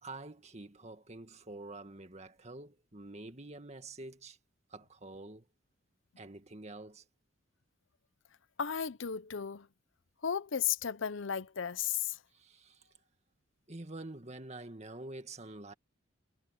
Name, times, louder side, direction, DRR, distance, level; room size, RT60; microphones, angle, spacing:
voice 1, 0.0-4.4 4.7-5.5 6.2-7.1 12.3-12.9 13.7-15.7, right 2 dB, 35° right, 2.0 m, -47 dB
voice 2, 8.6-9.7 10.2-12.2, left 8 dB, 70° left, 0.7 m, -34 dB
head